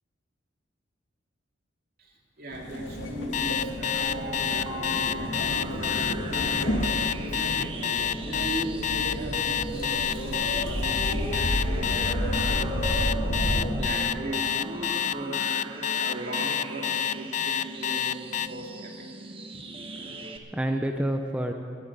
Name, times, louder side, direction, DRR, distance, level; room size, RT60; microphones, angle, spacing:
voice 1, 2.0-7.8 8.3-12.8 13.8-15.5 15.7-19.0, right 1 dB, 55° right, 0 dB, 2.5 m, -38 dB
sound 1, 2.5-13.7, equal, 80° left, 2.0 m, -31 dB
Alarm, 3.3-18.5, left 9 dB, 40° left, 0.3 m, -28 dB
sound 2, 4.4-20.4, right 2 dB, 30° right, 1.1 m, -40 dB
voice 2, 19.7-21.5, right 1 dB, 5° right, 4 dB, 0.6 m, -30 dB
12.0 x 11.0 x 9.7 m, 2.3 s
head